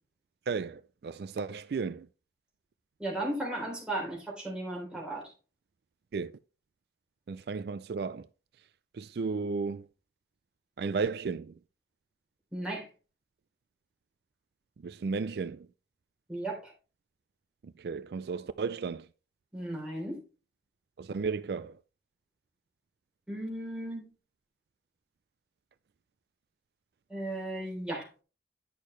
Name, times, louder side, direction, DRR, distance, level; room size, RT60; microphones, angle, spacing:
voice 1, 0.5-2.1 6.1-6.3 7.3-8.3 8.9-9.9 10.8-11.6 14.8-15.7 17.6-19.1 21.0-21.8, right 4 dB, 60° right, 0.4 m, -34 dB
voice 2, 3.0-5.3 12.5-12.9 16.3-16.7 19.5-20.2 23.3-24.0 27.1-28.1, right 1 dB, 5° right, 3.5 m, -35 dB
9.9 x 6.4 x 3.2 m
head